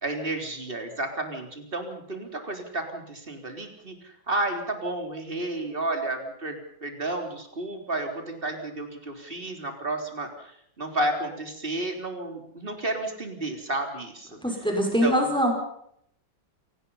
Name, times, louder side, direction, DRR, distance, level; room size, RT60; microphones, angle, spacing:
voice 1, 0.0-4.0 4.3-10.3 10.8-14.4 15.0-15.3, right 2 dB, 30° right, 4 dB, 3.8 m, -31 dB
voice 2, 14.4-15.5, equal, ahead, 2 dB, 5.6 m, -23 dB
27.5 x 19.0 x 5.7 m, 0.70 s
omnidirectional pair, 2.0 m